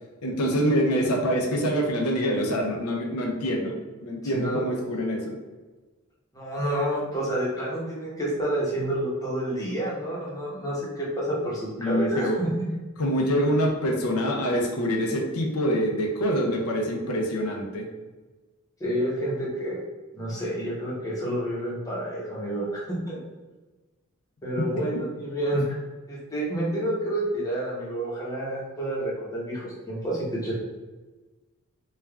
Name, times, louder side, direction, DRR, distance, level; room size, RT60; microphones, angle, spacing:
voice 1, 0.2-5.3 11.8-12.4 13.0-17.9, equal, 80° left, 1 dB, 0.6 m, -25 dB
voice 2, 4.2-4.6 6.3-12.5 18.8-19.8 20.1-23.2 24.4-25.8 26.1-30.5, right 1 dB, 15° left, -6 dB, 0.7 m, -29 dB
3.2 x 2.3 x 2.3 m, 1.2 s
head